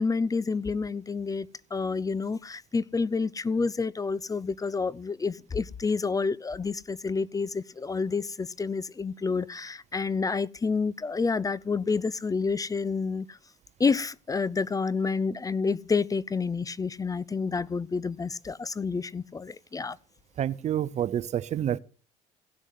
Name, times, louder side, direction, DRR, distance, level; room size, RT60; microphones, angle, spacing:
voice 1, 0.0-13.4 13.8-20.0, left 4 dB, 20° left, 0.5 m, -29 dB
voice 2, 20.4-21.8, right 10 dB, 45° right, 0.6 m, -28 dB
16.5 x 6.3 x 7.6 m
hypercardioid pair, 65°, 16 cm